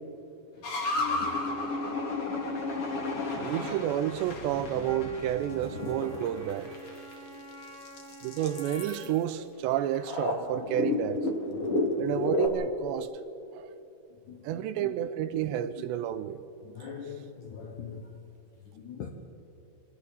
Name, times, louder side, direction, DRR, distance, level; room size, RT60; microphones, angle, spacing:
sound 1, 0.6-7.1 7.7-9.1 9.9-12.5, left 2 dB, 40° left, 2.3 m, -32 dB
voice 1, 3.3-6.8 8.2-11.3 12.0-13.1 13.5-13.7 14.4-16.4, right 11 dB, 80° right, 2.8 m, -30 dB
Wind instrument woodwind instrument, 4.8-9.3, equal, 25° left, 4.3 m, -47 dB
voice 2, 16.7-18.0 18.7-19.1, left 7 dB, 70° left, 1.9 m, -41 dB
27.5 x 24.5 x 4.1 m
omnidirectional pair, 5.2 m